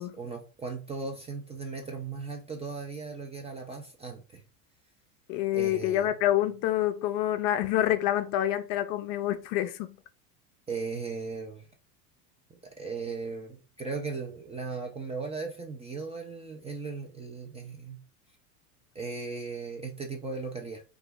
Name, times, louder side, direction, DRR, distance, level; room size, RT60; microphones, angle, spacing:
voice 1, 0.0-4.4 5.5-6.1 10.7-11.7 12.8-18.0 18.9-20.8, right 4 dB, 15° right, 0.3 m, -37 dB
voice 2, 5.3-10.0, left 13 dB, 50° left, 0.5 m, -27 dB
2.8 x 2.4 x 3.4 m
hypercardioid pair, 95°, 46 cm